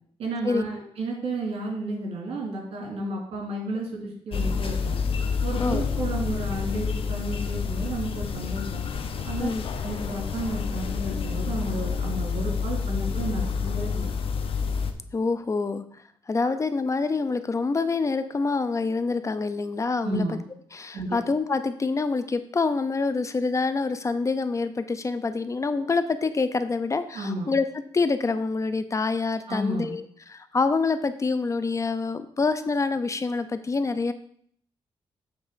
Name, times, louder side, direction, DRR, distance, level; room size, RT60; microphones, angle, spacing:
voice 1, 0.2-5.0 5.4-8.8 9.2-9.5 9.8-14.1 20.0-20.3 20.9-21.2 27.1-27.5 29.5-29.9, right 2 dB, 75° right, 0 dB, 2.9 m, -32 dB
sound 1, 4.3-14.9, left 5 dB, 65° left, 0.8 m, -28 dB
voice 2, 15.1-15.8 16.3-20.4 20.7-27.6 27.9-30.0 30.3-34.1, left 4 dB, 30° left, 11 dB, 0.6 m, -26 dB
8.1 x 3.7 x 6.8 m, 0.62 s
cardioid pair, 105°, 10 cm